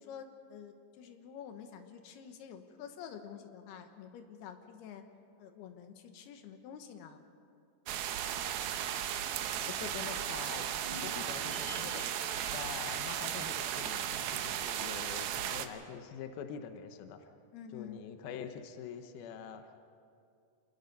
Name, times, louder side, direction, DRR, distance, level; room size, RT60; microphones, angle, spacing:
voice 1, 0.0-5.0 5.4-7.2 17.5-18.0, left 8 dB, 70° left, 6 dB, 2.7 m, -48 dB
sound 1, 7.9-15.7, right 10 dB, 90° right, 2.2 m, -36 dB
voice 2, 9.6-10.7 11.0-12.1 12.5-17.3 17.7-19.7, left 8 dB, 85° left, 7 dB, 2.1 m, -45 dB
sound 2, 10.8-15.3 15.5-15.6, equal, 30° left, 4.1 m, -51 dB
26.5 x 20.5 x 5.5 m, 2.4 s
omnidirectional pair, 5.8 m